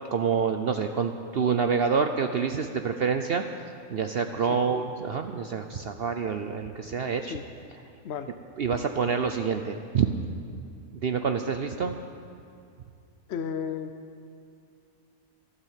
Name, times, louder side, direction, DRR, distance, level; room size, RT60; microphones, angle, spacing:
voice 1, 0.1-3.4 3.9-7.4 8.6-10.1 11.0-11.9, right 6 dB, 55° right, 6 dB, 0.8 m, -27 dB
voice 2, 13.3-13.9, left 7 dB, 60° left, 8 dB, 0.8 m, -33 dB
13.0 x 12.5 x 7.4 m, 2.4 s
omnidirectional pair, 1.5 m